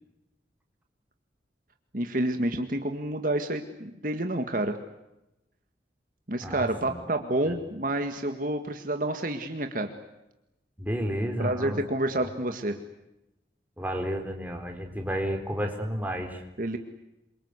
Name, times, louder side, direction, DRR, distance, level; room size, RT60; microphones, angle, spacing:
voice 1, 1.9-4.8 6.3-9.9 11.4-12.8 16.6-16.8, right 1 dB, 50° right, 6 dB, 1.9 m, -29 dB
voice 2, 6.4-7.0 7.5-7.6 10.8-11.8 13.8-16.4, equal, 10° right, 2 dB, 4.2 m, -31 dB
27.5 x 24.5 x 8.2 m, 0.92 s
head